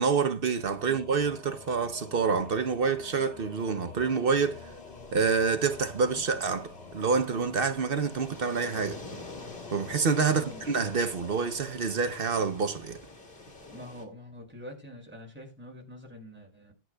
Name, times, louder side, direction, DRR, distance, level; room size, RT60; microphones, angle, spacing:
voice 1, 0.0-4.7 5.1-9.0 9.7-13.0, right 5 dB, 65° right, 1.0 m, -27 dB
Singing / Musical instrument, 0.5-13.1, left 4 dB, 80° left, 1.9 m, -48 dB
sound 1, 4.3-14.0, left 2 dB, 60° left, 2.6 m, -48 dB
voice 2, 10.3-10.6 13.7-16.7, left 1 dB, 10° right, 5.7 m, -45 dB
21.0 x 10.0 x 2.3 m
omnidirectional pair, 1.0 m